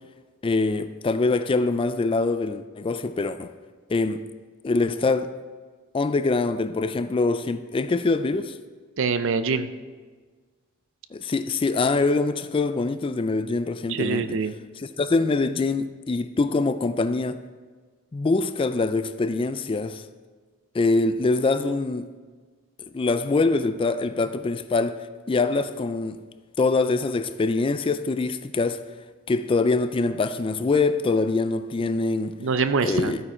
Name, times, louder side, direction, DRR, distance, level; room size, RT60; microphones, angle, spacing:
voice 1, 0.4-3.5 3.9-4.2 4.6-5.3 5.9-8.6 11.1-14.4 14.8-17.4 18.1-20.0 20.7-22.1 22.8-26.2 26.6-28.8 29.3-32.3 32.8-33.2, left 3 dB, 25° left, 0.3 m, -24 dB
voice 2, 9.0-9.7 13.9-14.5 32.4-33.2, right 4 dB, 60° right, 0.5 m, -24 dB
12.5 x 9.3 x 4.3 m
head